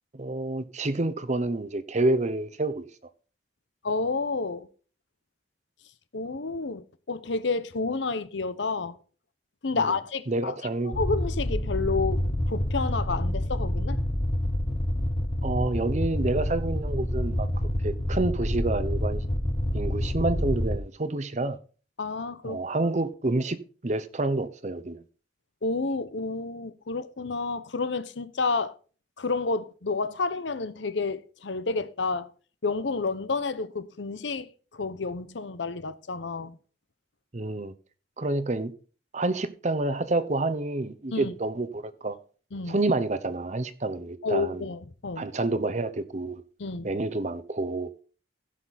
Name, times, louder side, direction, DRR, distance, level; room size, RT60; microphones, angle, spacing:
voice 1, 0.2-2.8 9.7-10.0 10.3-10.9 15.4-17.5 17.8-19.2 19.7-21.6 22.4-23.6 23.8-25.0 37.3-37.7 38.2-38.7 39.1-42.2 42.7-44.7 45.2-46.4 46.8-47.9, right 2 dB, 40° right, 0.9 m, -28 dB
voice 2, 3.8-4.7 6.1-9.0 9.6-10.5 10.8-14.0 22.0-22.6 25.6-28.7 29.2-32.3 32.6-36.6 41.1-41.3 42.5-42.8 44.2-45.3 46.6-46.9, left 4 dB, 85° left, 0.8 m, -30 dB
sound 1, 10.9-20.8, left 1 dB, 30° left, 1.0 m, -28 dB
16.0 x 5.9 x 4.2 m
head